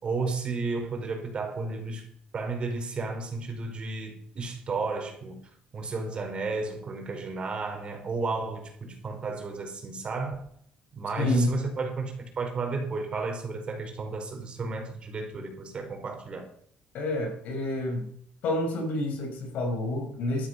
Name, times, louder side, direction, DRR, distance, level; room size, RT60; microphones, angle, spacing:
voice 1, 0.0-2.0 2.3-5.4 5.7-10.5 10.9-16.5, right 3 dB, 40° right, 4 dB, 4.9 m, -33 dB
voice 2, 11.2-11.6 16.9-18.1 18.4-20.5, left 2 dB, 75° left, 3 dB, 5.8 m, -28 dB
13.0 x 12.5 x 5.9 m, 0.65 s
cardioid pair, 105°, 3 cm